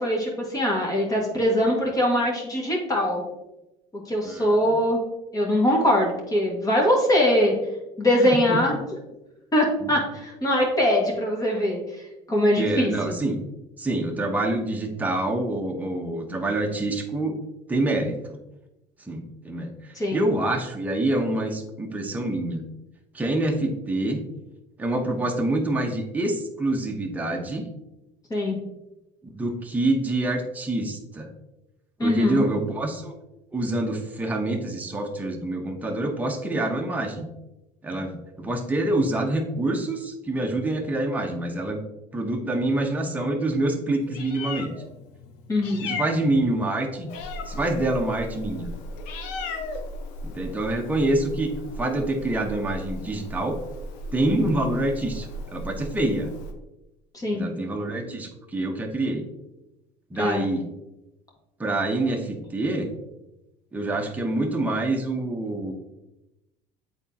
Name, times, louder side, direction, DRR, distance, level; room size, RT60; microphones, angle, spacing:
voice 1, 0.0-3.2 3.9-5.0 5.3-7.5 8.0-8.8 9.5-13.1 20.0-20.2 28.3-28.6 32.0-32.4 45.5-45.9 57.1-57.4 60.2-60.4, left 1 dB, 25° left, -2 dB, 1.8 m, -22 dB
voice 2, 4.3-4.8 8.3-8.6 9.8-9.9 12.6-13.4 13.8-17.4 17.7-18.2 19.0-19.7 20.1-22.6 23.1-24.2 24.8-27.7 29.2-31.3 32.0-33.1 33.5-37.3 37.8-41.8 42.1-44.7 45.8-47.1 47.4-48.7 50.2-51.5 51.8-53.6 54.1-56.3 57.3-59.3 60.1-60.7 61.6-62.9 63.7-65.7, right 2 dB, 10° right, 1 dB, 0.9 m, -26 dB
Meow, 44.0-56.5, left 1 dB, 85° left, 0.8 m, -36 dB
8.1 x 4.1 x 2.9 m, 0.96 s
supercardioid pair, 110°, 16 cm